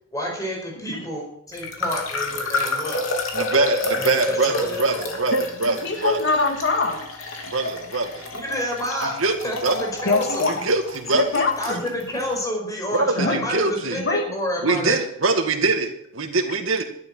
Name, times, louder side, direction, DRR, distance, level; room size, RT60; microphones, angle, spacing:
voice 1, 0.1-3.0 3.9-5.0 8.3-9.1 9.4-10.5 11.6-15.0, left 1 dB, 15° left, 0 dB, 5.0 m, -29 dB
sound 1, 1.5-12.3, left 2 dB, 90° left, 3.0 m, -29 dB
voice 2, 3.3-5.3 5.6-5.7 6.0-6.2 7.5-8.3 9.2-9.3 9.6-9.7 10.6-11.2 12.9-14.0 14.6-16.8, right 3 dB, 80° right, 5 dB, 2.1 m, -23 dB
voice 3, 5.3-7.0 10.0-10.6 11.1-11.8 13.2-13.4 14.0-14.2, left 3 dB, 60° left, 4 dB, 2.4 m, -23 dB
12.0 x 12.0 x 5.6 m, 0.72 s
head